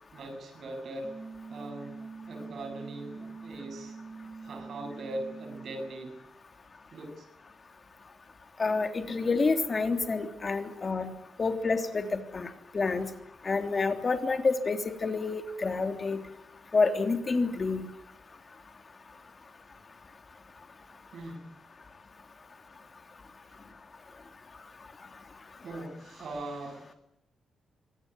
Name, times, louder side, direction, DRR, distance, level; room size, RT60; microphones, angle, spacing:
voice 1, 0.1-1.1 1.5-2.0 2.3-4.0 4.4-6.1 6.9-7.3 21.1-21.5 23.5-23.6 25.6-27.0, right 2 dB, 55° right, 5 dB, 8.0 m, -40 dB
sound 1, 1.0-6.0, right 4 dB, 15° right, 2.1 m, -44 dB
voice 2, 8.6-11.1 11.4-13.1 13.4-16.2 16.7-17.8, left 4 dB, 35° left, 6 dB, 3.1 m, -28 dB
25.0 x 18.5 x 9.6 m, 0.83 s
cardioid pair, 110°, 0 cm